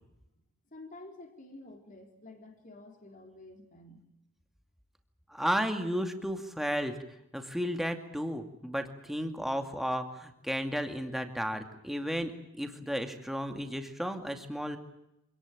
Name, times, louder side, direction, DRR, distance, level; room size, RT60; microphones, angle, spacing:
voice 1, 0.7-4.1, left 2 dB, 35° left, 3 dB, 3.7 m, -50 dB
voice 2, 5.3-7.0 7.3-14.8, equal, ahead, 5 dB, 2.4 m, -33 dB
27.0 x 18.5 x 9.2 m, 0.87 s
head